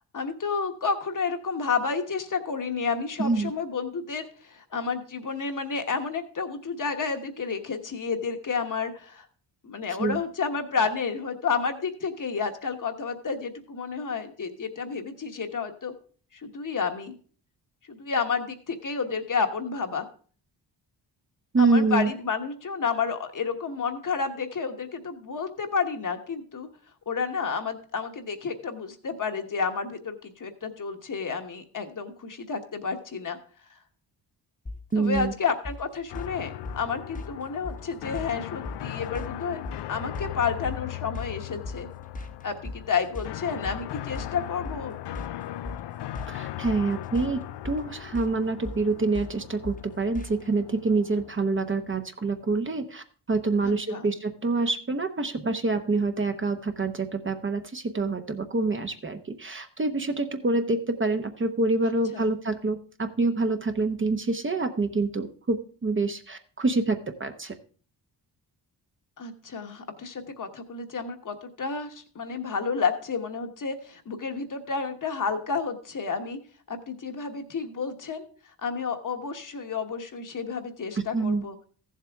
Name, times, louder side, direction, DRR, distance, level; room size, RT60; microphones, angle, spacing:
voice 1, 0.1-9.3 9.6-15.9 16.3-17.2 17.9-20.1 21.6-26.7 27.1-33.4 35.0-39.6 39.9-41.9 42.4-45.0 53.6-54.1 61.8-62.3 69.2-76.4 76.7-78.2 78.6-81.5, left 5 dB, 45° left, 6 dB, 1.2 m, -30 dB
voice 2, 3.2-3.5 10.0-10.2 21.5-22.1 34.9-35.3 46.3-67.5 81.1-81.5, right 3 dB, 30° right, 7 dB, 0.8 m, -26 dB
sound 1, 34.7-50.5, left 2 dB, 20° left, 1.1 m, -40 dB
sound 2, 36.1-52.0, left 13 dB, 70° left, 0.5 m, -39 dB
14.5 x 7.4 x 3.5 m, 0.43 s
cardioid pair, 95°, 43 cm